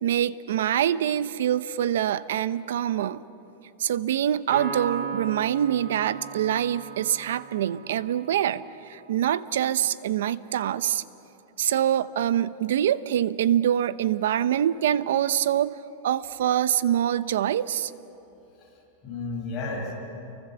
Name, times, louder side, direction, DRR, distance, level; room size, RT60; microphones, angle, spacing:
voice 1, 0.0-3.2 3.8-11.0 11.6-15.8 16.0-17.9, right 10 dB, 80° right, 16 dB, 0.8 m, -25 dB
Piano, 4.5-8.1, right 6 dB, 40° right, 4.0 m, -36 dB
voice 2, 18.6-19.9, left 3 dB, 20° left, -2 dB, 5.3 m, -33 dB
29.0 x 24.0 x 7.0 m, 3.0 s
supercardioid pair, 175°, 0 cm